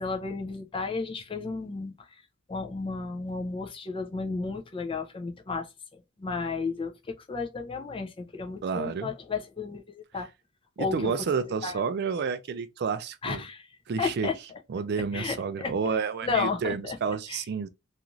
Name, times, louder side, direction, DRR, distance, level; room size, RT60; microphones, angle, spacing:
voice 1, 0.0-1.9 2.5-10.3 10.8-11.1 11.6-11.8 13.2-13.7 14.0-14.3 15.1-15.7 16.2-17.0 17.3-17.4, left 4 dB, 25° left, 0.4 m, -33 dB
voice 2, 8.6-9.1 10.8-13.4 13.9-14.3 14.7-17.7, right 5 dB, 50° right, 0.3 m, -30 dB
2.5 x 2.4 x 2.9 m
head